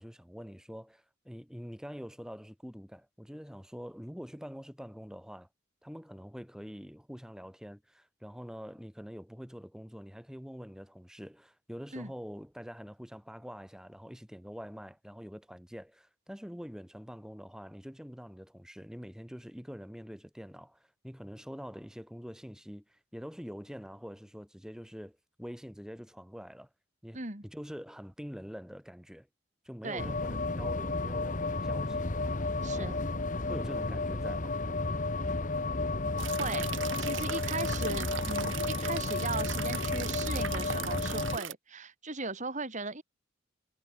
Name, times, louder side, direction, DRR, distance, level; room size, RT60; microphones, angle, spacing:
voice 1, 0.0-5.5 5.8-26.7 27.0-29.3 29.6-32.1 32.7-33.1 33.5-34.6, equal, 5° right, 5.3 m, -45 dB
sound 1, 30.0-41.4, left 2 dB, 40° left, 1.2 m, -32 dB
voice 2, 32.6-33.0 36.2-43.0, right 3 dB, 40° right, 4.8 m, -38 dB
sound 2, 36.2-41.5, right 8 dB, 75° right, 4.0 m, -39 dB
head